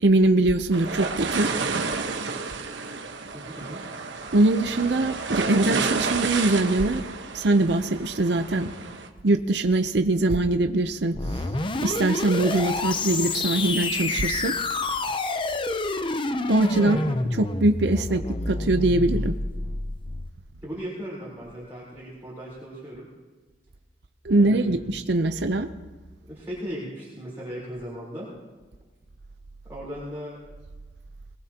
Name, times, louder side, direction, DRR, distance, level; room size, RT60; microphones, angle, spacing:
voice 1, 0.0-1.5 4.3-7.0 7.3-8.7 9.2-11.5 11.8-14.5 16.5-17.0 17.4-19.4 24.2-25.7, right 2 dB, 70° right, 8 dB, 0.7 m, -22 dB
sound 1, 0.7-9.1, right 4 dB, 90° right, 1.3 m, -30 dB
voice 2, 3.3-3.8 16.8-17.0 20.6-23.1 24.3-24.8 26.3-28.3 29.7-30.4, equal, 15° right, -8 dB, 4.0 m, -37 dB
sound 2, 11.1-20.3, left 2 dB, 30° left, 0.7 m, -28 dB
22.0 x 20.5 x 2.9 m, 1.3 s
head